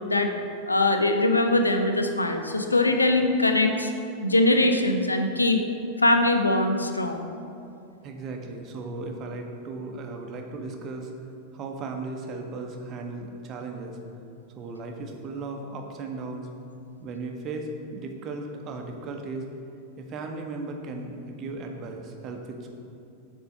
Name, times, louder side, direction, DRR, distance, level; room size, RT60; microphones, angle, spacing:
voice 1, 0.7-3.9 4.2-5.6 6.0-7.3, left 2 dB, 80° left, 5 dB, 0.5 m, -22 dB
voice 2, 8.0-11.1 11.5-14.0 14.6-16.5 17.0-19.4 20.0-22.7, right 3 dB, 35° right, 3 dB, 0.8 m, -36 dB
6.9 x 3.7 x 6.3 m, 2.6 s
figure-of-eight pair, 90°, 0 cm